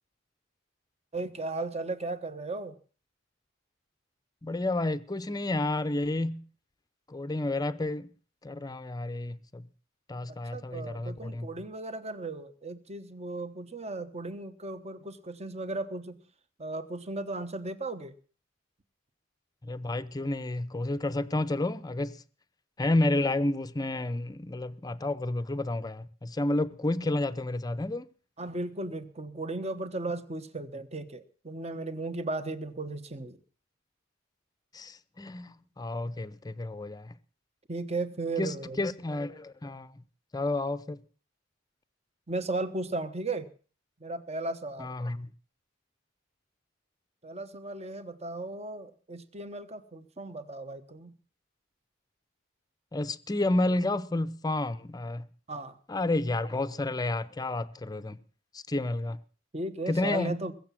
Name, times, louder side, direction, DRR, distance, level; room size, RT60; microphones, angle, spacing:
voice 1, 1.1-2.8 10.3-16.2 16.6-18.1 28.4-33.4 37.7-38.8 42.3-43.5 44.0-45.0 47.2-51.1 55.5-55.8 56.4-56.6 59.5-60.5, right 2 dB, 35° right, 1.2 m, -36 dB
voice 2, 4.4-6.4 7.1-8.1 8.4-9.6 10.1-11.5 19.6-22.2 22.8-28.0 34.7-37.1 38.4-39.9 40.3-41.0 44.8-45.3 52.9-55.3 55.9-58.2 58.5-59.2 59.9-60.4, left 2 dB, 20° left, 0.7 m, -30 dB
21.5 x 7.2 x 7.5 m
head